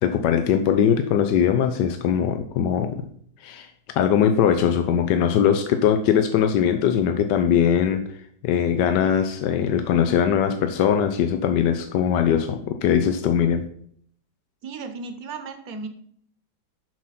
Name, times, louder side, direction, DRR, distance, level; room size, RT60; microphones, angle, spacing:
voice 1, 0.0-3.0 3.4-3.7 4.0-8.0 8.4-13.6, left 8 dB, 85° left, 7 dB, 1.3 m, -21 dB
voice 2, 14.6-15.9, right 4 dB, 60° right, 8 dB, 1.5 m, -35 dB
7.4 x 5.7 x 5.8 m, 0.62 s
omnidirectional pair, 1.9 m